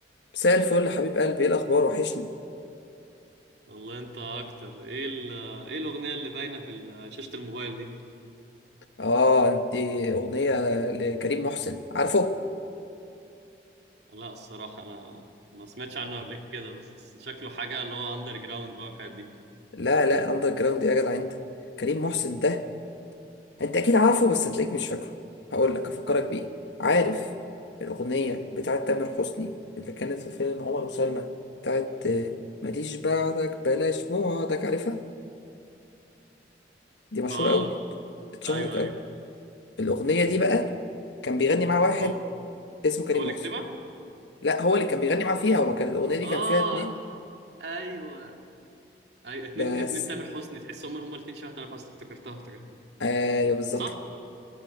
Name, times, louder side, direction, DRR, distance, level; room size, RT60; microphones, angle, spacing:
voice 1, 0.3-2.3 9.0-12.3 19.7-21.3 21.8-22.6 23.6-25.1 25.5-26.5 26.8-27.2 27.8-31.3 31.6-32.3 32.6-35.0 37.1-37.7 38.4-38.9 39.8-40.7 41.2-42.1 42.8-43.3 44.4-46.9 49.6-49.9 53.0-53.9, left 2 dB, 85° left, 8 dB, 1.2 m, -25 dB
voice 2, 3.7-7.9 14.1-15.3 15.5-19.3 28.1-28.4 37.3-37.7 38.4-38.9 42.0-42.2 43.1-43.7 46.2-46.9 47.6-48.4 49.2-52.6 53.8-54.0, right 2 dB, 70° right, 2 dB, 2.4 m, -36 dB
20.5 x 16.5 x 9.3 m, 2.7 s
head